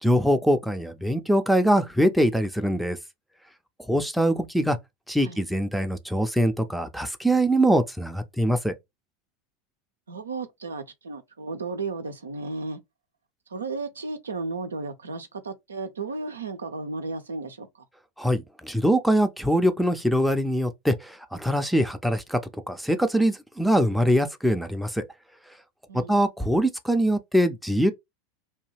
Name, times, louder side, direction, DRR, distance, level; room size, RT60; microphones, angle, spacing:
voice 1, 0.0-3.0 3.9-4.8 5.1-8.8 18.2-22.4 22.7-25.0 25.9-27.9, equal, ahead, 0.5 m, -23 dB
voice 2, 10.1-12.8 13.5-17.7 25.9-26.2, right 3 dB, 85° right, 0.5 m, -34 dB
2.8 x 2.2 x 3.2 m
figure-of-eight pair, 85°, 0 cm